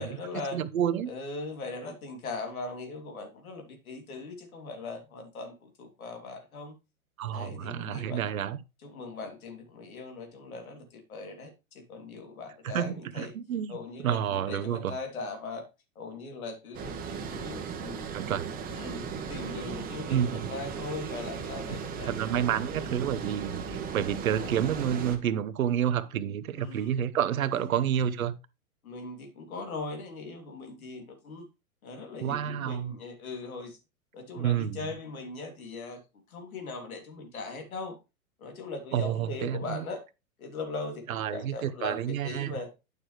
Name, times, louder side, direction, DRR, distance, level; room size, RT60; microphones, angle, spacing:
voice 1, 0.0-0.6 1.1-6.7 7.3-8.3 8.8-13.3 13.7-15.6 15.9-18.0 18.7-22.3 22.8-23.5 24.4-24.6 26.6-26.9 27.6-27.8 28.8-31.4 31.8-33.8 34.1-36.0 36.3-38.0 38.4-40.0 40.4-42.7, left 3 dB, 75° left, 3.1 m, -40 dB
voice 2, 0.5-1.1 7.2-8.6 12.6-12.9 13.2-14.9 18.1-18.5 20.1-20.5 22.0-28.3 32.2-32.9 34.3-34.9 38.9-39.8 41.1-42.5, right 9 dB, 70° right, 1.0 m, -29 dB
Water, 16.7-25.2, right 6 dB, 20° right, 1.2 m, -37 dB
9.6 x 6.7 x 3.3 m
hypercardioid pair, 125°, 43 cm